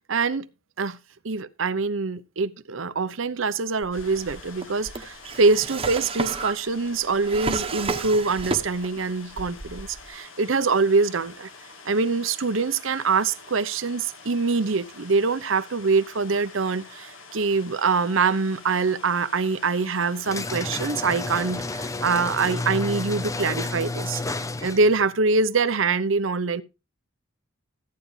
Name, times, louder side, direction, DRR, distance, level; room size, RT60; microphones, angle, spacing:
voice 1, 0.1-0.5 0.8-1.0 1.2-11.5 11.8-26.6, right 4 dB, 70° right, 0.8 m, -24 dB
Drawer open or close, 3.8-9.0 9.3-10.1, right 3 dB, 25° right, 1.1 m, -32 dB
sound 1, 3.9-23.5, left 4 dB, 65° left, 1.8 m, -47 dB
sound 2, 20.2-25.0, left 2 dB, 15° left, 0.5 m, -31 dB
14.5 x 9.4 x 3.3 m
head